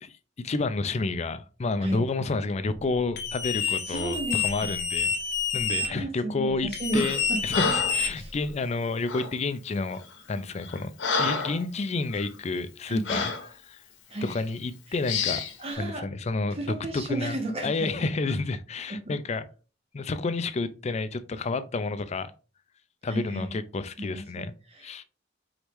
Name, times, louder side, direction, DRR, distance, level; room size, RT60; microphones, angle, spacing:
voice 1, 0.0-5.1 5.5-10.0 10.3-10.9 11.2-13.3 13.7-13.8 14.2-15.4 15.8-16.6 16.9-19.5 19.9-22.3 23.0-24.5 24.8-25.0, left 3 dB, 35° left, 0.4 m, -30 dB
sound 1, 3.2-5.9 6.7-8.5, left 6 dB, 60° left, 1.3 m, -28 dB
voice 2, 3.6-4.8 5.7-7.4 8.2-8.3 12.9-13.3 14.1-14.3 15.6-16.1 16.5-18.1 18.9-19.1 23.1-23.6 24.0-24.9, right 1 dB, 35° right, 0.8 m, -33 dB
Breathing, 6.9-7.2 7.5-8.0 9.1-9.3 10.0-10.2 10.6-11.6 12.1-12.3 13.1-13.5 14.2-14.4 15.1-15.5, left 4 dB, 90° left, 1.0 m, -29 dB
5.0 x 3.1 x 3.0 m
head